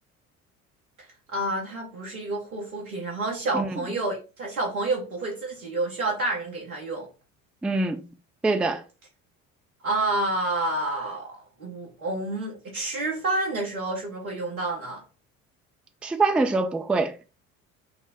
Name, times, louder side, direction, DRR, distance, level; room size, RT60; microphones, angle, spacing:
voice 1, 1.3-7.1 9.8-15.0, right 2 dB, 85° right, 1.4 m, -29 dB
voice 2, 7.6-8.0 8.4-8.8 16.0-17.2, right 3 dB, 5° right, 0.3 m, -24 dB
5.5 x 2.1 x 3.5 m
figure-of-eight pair, 55°, 42 cm